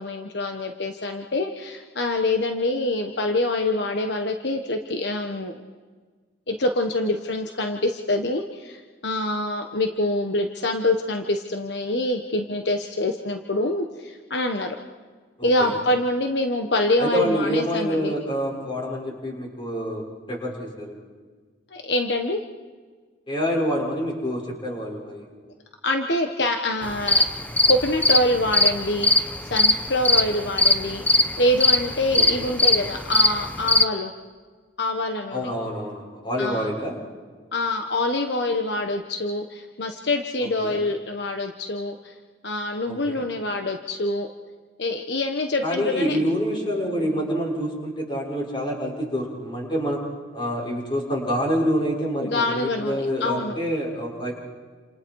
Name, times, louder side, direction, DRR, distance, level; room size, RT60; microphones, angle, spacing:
voice 1, 0.0-5.6 6.5-14.8 15.4-18.1 21.7-22.4 25.8-27.2 27.7-34.1 34.8-35.5 36.4-36.7 37.5-42.1 42.4-44.3 44.8-46.2 52.2-53.5, left 2 dB, 70° left, 4 dB, 1.3 m, -25 dB
voice 2, 15.4-15.8 17.0-21.0 23.3-25.3 32.1-32.5 35.3-37.0 40.4-40.8 42.9-43.2 45.6-50.0 50.3-54.3, equal, 25° left, -1 dB, 6.3 m, -27 dB
sound 1, 26.8-33.8, left 2 dB, 10° left, 0.9 m, -20 dB
29.0 x 28.0 x 4.8 m, 1.5 s
head